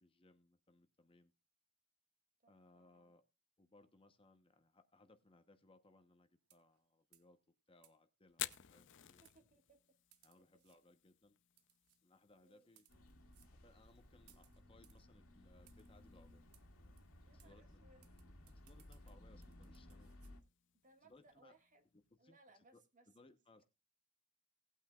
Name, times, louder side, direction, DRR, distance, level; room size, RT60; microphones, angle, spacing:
voice 1, 0.0-1.3 2.5-3.2 3.6-9.2 10.2-11.4 12.0-12.9 13.4-16.4 16.8-17.0 17.3-17.9 18.5-20.1 21.0-21.5 21.9-23.6, left 2 dB, 25° left, 9 dB, 0.9 m, -67 dB
voice 2, 2.4-3.1 9.2-9.8 12.4-12.7 17.2-18.1 20.8-21.8 22.2-23.1, right 2 dB, 35° right, 6 dB, 1.8 m, -68 dB
sound 1, 6.4-6.8 7.1-7.3 7.8-7.9 8.5-8.9 9.2-9.4 10.1-10.8 11.6-12.0 12.6-13.0 13.3-13.5 14.3-15.0 15.7-15.9 16.5-16.6 17.0-17.1 17.4-17.5 18.0-20.3, right 12 dB, 85° right, 1.2 m, -70 dB
Fire, 8.3-22.1, left 14 dB, 55° left, 0.6 m, -56 dB
sound 2, 12.9-20.4, left 1 dB, 70° left, 2.1 m, -60 dB
18.5 x 8.9 x 2.4 m, 0.25 s
head